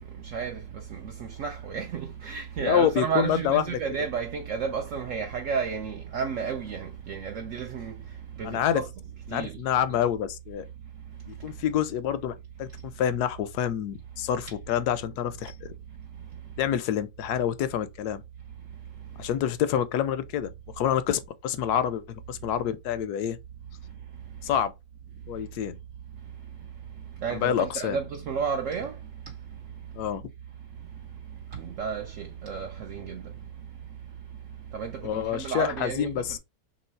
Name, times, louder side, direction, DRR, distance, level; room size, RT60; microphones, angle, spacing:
voice 1, 0.2-7.9 8.4-8.9 9.3-9.6 9.9-10.1 27.2-28.9 31.5-33.2 34.7-36.4, right 6 dB, 65° right, 0.8 m, -32 dB
voice 2, 2.6-3.8 8.4-8.8 9.3-10.7 11.3-15.5 16.6-18.2 19.2-20.5 20.8-23.4 24.4-24.7 25.3-25.7 27.3-28.0 29.9-30.2 35.0-36.4, left 9 dB, 75° left, 1.0 m, -27 dB
3.1 x 3.0 x 4.3 m
omnidirectional pair, 1.8 m